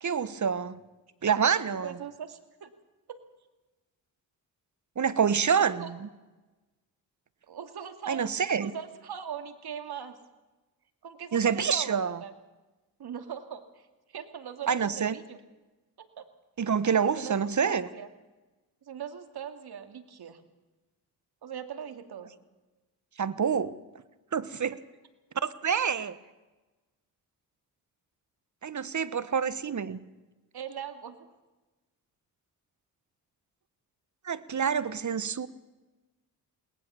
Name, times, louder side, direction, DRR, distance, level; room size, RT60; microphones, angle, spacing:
voice 1, 0.0-0.8 1.2-2.0 5.0-6.1 8.1-8.7 11.3-12.2 14.7-15.2 16.6-17.9 23.2-23.7 24.3-24.7 25.4-26.2 28.6-30.0 34.2-35.5, right 7 dB, 45° right, 16 dB, 1.4 m, -27 dB
voice 2, 1.8-2.7 3.1-3.2 5.8-5.9 7.5-10.2 11.0-12.3 13.0-15.4 16.0-16.2 17.0-18.1 18.8-20.4 21.4-22.3 30.5-31.2, right 8 dB, 65° right, 9 dB, 2.5 m, -41 dB
20.5 x 19.5 x 7.1 m, 1.1 s
supercardioid pair, 50°, 42 cm